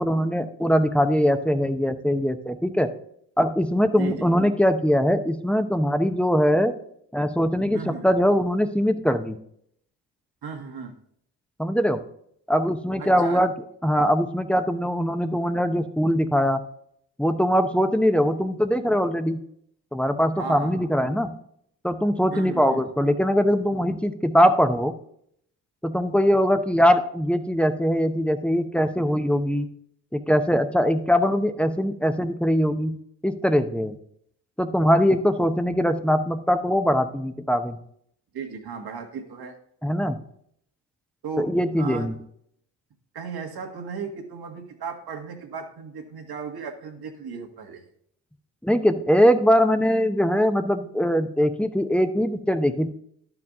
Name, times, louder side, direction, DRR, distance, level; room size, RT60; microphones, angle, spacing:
voice 1, 0.0-2.9 3.4-6.7 7.1-9.4 11.6-12.0 12.5-13.5 13.8-16.6 17.2-19.4 19.9-21.3 21.8-24.9 25.8-29.7 30.1-32.9 33.2-34.0 34.6-37.8 39.8-40.2 41.4-42.1 48.6-52.9, equal, 5° left, 8 dB, 0.8 m, -22 dB
voice 2, 3.9-4.4 7.7-8.1 10.4-11.0 13.0-13.4 20.4-20.9 22.3-22.8 38.3-39.6 41.2-42.1 43.1-47.8, right 5 dB, 65° right, 4 dB, 1.8 m, -36 dB
12.0 x 4.8 x 3.7 m, 0.68 s
supercardioid pair, 65°, 41 cm